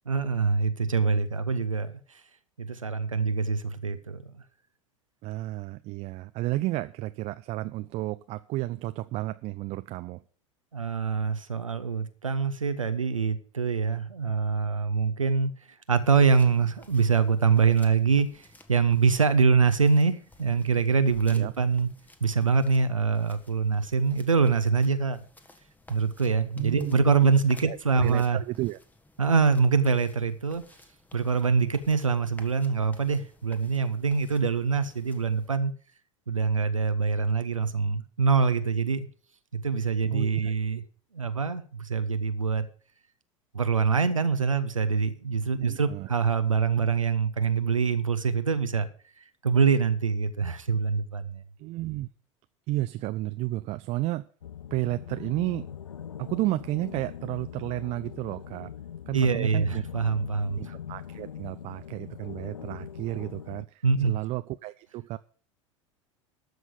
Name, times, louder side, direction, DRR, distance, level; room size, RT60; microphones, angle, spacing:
voice 1, 0.1-2.2 2.6-4.4 10.7-21.9 22.2-25.2 25.9-28.4 29.2-30.6 31.1-35.7 36.3-39.1 39.5-40.8 41.1-42.6 43.5-48.9 49.2-51.4 59.1-60.7 63.8-64.2, right 5 dB, 80° right, 0.9 m, -24 dB
voice 2, 5.2-10.2 21.3-21.5 26.6-27.0 27.7-28.8 40.1-40.5 45.7-46.1 51.6-52.1 52.7-54.2 54.7-55.7 56.2-58.7 59.1-59.8 60.6-65.2, right 18 dB, 40° right, 0.5 m, -32 dB
sound 1, 16.0-35.5, left 2 dB, 10° left, 1.6 m, -52 dB
sound 2, 54.4-63.6, left 9 dB, 75° left, 0.5 m, -41 dB
13.0 x 6.3 x 6.7 m
figure-of-eight pair, 80°, 17 cm